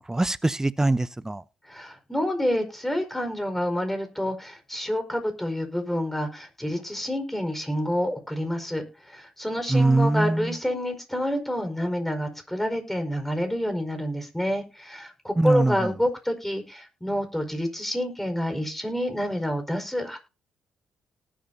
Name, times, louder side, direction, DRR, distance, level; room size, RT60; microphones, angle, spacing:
voice 1, 0.1-1.4 9.7-10.5 15.4-15.9, right 2 dB, 15° right, 0.8 m, -22 dB
voice 2, 1.7-20.2, equal, 5° left, 4.9 m, -28 dB
19.0 x 8.9 x 2.8 m
hypercardioid pair, 45°, 3 cm